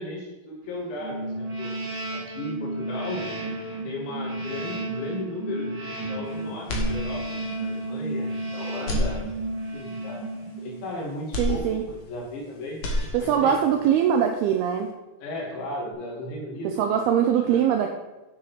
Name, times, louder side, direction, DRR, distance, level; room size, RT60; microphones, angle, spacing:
voice 1, 0.0-1.8 2.1-3.2 3.8-9.2 9.7-10.3 10.6-12.8 13.2-13.6 15.2-16.8 17.4-17.6, left 1 dB, 75° left, -1 dB, 4.5 m, -35 dB
sound 1, 1.0-10.9, right 1 dB, 35° right, 2.7 m, -32 dB
sound 2, 6.6-7.6 8.0-8.1 8.7-9.8 11.3-12.4 12.7-13.6, left 1 dB, 60° left, 1.7 m, -30 dB
voice 2, 11.4-11.8 13.1-14.9 16.6-17.9, right 8 dB, 85° right, 4 dB, 2.2 m, -22 dB
9.8 x 6.6 x 5.7 m, 1.1 s
omnidirectional pair, 5.3 m